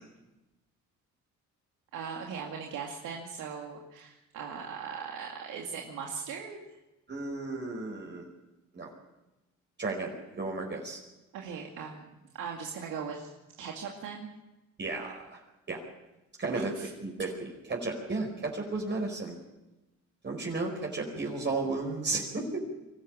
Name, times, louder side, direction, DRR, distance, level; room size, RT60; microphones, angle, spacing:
voice 1, 1.9-6.6 11.3-14.3 16.5-16.9, right 6 dB, 90° right, 0 dB, 2.4 m, -39 dB
voice 2, 7.1-8.3 8.7-8.9 9.8-11.0 14.8-15.4 15.7-15.8 16.4-19.4 20.2-22.6, right 3 dB, 35° right, 0 dB, 4.9 m, -34 dB
24.5 x 14.0 x 9.0 m, 1.0 s
cardioid pair, 90°, 30 cm